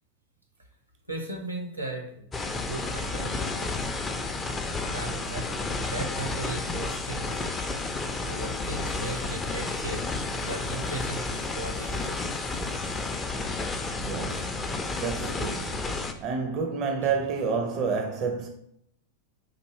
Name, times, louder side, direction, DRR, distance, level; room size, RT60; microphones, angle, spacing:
voice 1, 1.1-2.2 2.5-3.7 4.9-7.4 8.3-13.2 14.8-15.4, right 2 dB, 90° right, 0.9 m, -38 dB
sound 1, 2.3-16.1, left 3 dB, 15° left, 0.4 m, -31 dB
voice 2, 14.0-18.5, right 5 dB, 40° right, 0.5 m, -30 dB
4.4 x 2.6 x 3.1 m
figure-of-eight pair, 90°, 0 cm